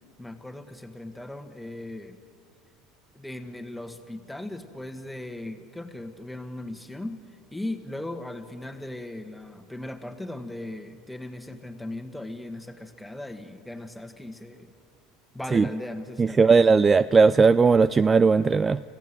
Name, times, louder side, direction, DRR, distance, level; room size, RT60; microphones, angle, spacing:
voice 1, 0.2-2.2 3.1-7.2 7.5-14.7 15.3-16.5, left 1 dB, 5° left, 6 dB, 1.9 m, -38 dB
voice 2, 16.2-18.8, right 4 dB, 25° right, 16 dB, 0.4 m, -18 dB
27.0 x 15.5 x 7.9 m, 2.4 s
hypercardioid pair, 85°, 0 cm